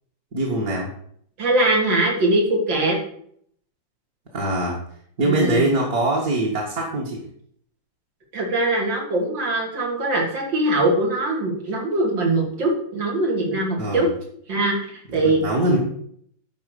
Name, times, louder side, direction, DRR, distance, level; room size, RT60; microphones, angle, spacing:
voice 1, 0.3-0.9 4.3-4.8 5.2-7.2 13.8-14.1 15.1-15.8, right 1 dB, 50° right, -3 dB, 2.2 m, -23 dB
voice 2, 1.4-3.0 5.2-5.7 8.3-14.1 14.5-15.4 15.7-15.8, right 2 dB, 85° right, -2 dB, 3.5 m, -22 dB
11.5 x 4.4 x 6.8 m, 0.65 s
omnidirectional pair, 2.0 m